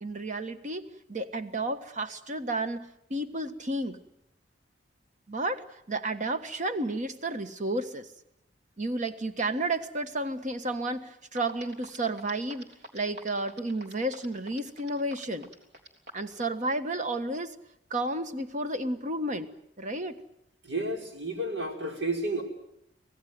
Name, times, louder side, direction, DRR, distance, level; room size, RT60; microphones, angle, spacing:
voice 1, 0.0-4.0 5.3-8.0 8.8-15.5 16.1-17.5 17.9-19.5 19.8-20.2, right 2 dB, 40° right, 9 dB, 1.5 m, -32 dB
sound 1, 11.0-11.1 11.4-16.3, right 1 dB, 60° right, 3.7 m, -46 dB
voice 2, 20.6-22.4, right 1 dB, 85° right, 3 dB, 5.2 m, -31 dB
26.0 x 17.5 x 9.5 m, 0.80 s
head